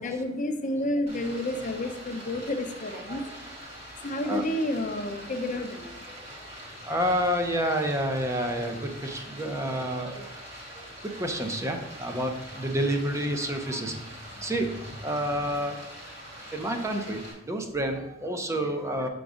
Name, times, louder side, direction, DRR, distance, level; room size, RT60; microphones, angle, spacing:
voice 1, 0.0-3.2 4.0-5.9, left 1 dB, 40° left, 5 dB, 0.7 m, -30 dB
Stream, 1.1-17.3, equal, 30° right, 2.3 m, -44 dB
voice 2, 3.1-3.4 4.3-4.4 6.1-6.2 6.8-10.3 10.7-15.8 16.5-19.1, equal, 15° right, 4 dB, 0.6 m, -29 dB
6.0 x 4.0 x 4.9 m, 0.97 s
head